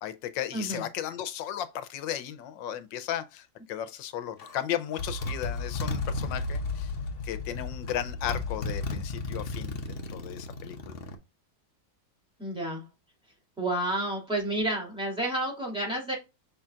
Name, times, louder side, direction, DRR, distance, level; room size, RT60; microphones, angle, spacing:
voice 1, 0.0-6.9 7.2-10.9, left 11 dB, 85° left, 1.4 m, -35 dB
voice 2, 0.5-0.8 12.4-12.8 13.6-16.2, right 1 dB, 5° right, 2.4 m, -30 dB
Motorcycle, 4.4-4.6 5.0-11.1, left 3 dB, 50° left, 0.7 m, -34 dB
5.6 x 3.8 x 2.4 m
omnidirectional pair, 2.0 m